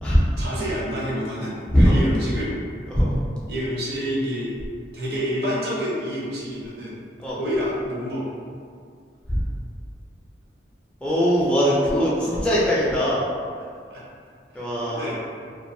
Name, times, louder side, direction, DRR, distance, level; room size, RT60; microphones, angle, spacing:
voice 1, 0.4-2.5 3.5-4.5 4.9-6.9 7.4-8.3 12.2-12.5 13.9-14.0 14.5-15.2, equal, 60° right, -5 dB, 0.6 m, -28 dB
voice 2, 11.0-13.2 14.5-15.1, equal, 5° left, -8 dB, 0.3 m, -20 dB
2.4 x 2.3 x 2.6 m, 2.2 s
head